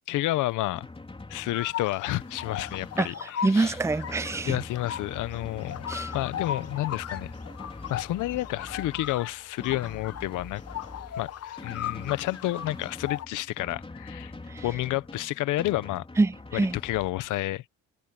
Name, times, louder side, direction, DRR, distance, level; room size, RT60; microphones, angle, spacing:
voice 1, 0.1-0.9 1.3-3.8 4.4-5.9 6.1-7.3 7.9-10.6 11.2-14.3 14.6-16.1 16.5-17.6, left 16 dB, 90° left, 0.9 m, -30 dB
Drum, 0.7-17.1, left 2 dB, 20° left, 3.9 m, -43 dB
sound 1, 1.5-13.2, left 9 dB, 55° left, 1.1 m, -38 dB
voice 2, 3.4-4.6 5.9-6.1 14.5-14.6 16.2-16.8, right 3 dB, 10° right, 0.6 m, -25 dB
cardioid pair, 90°, 30 cm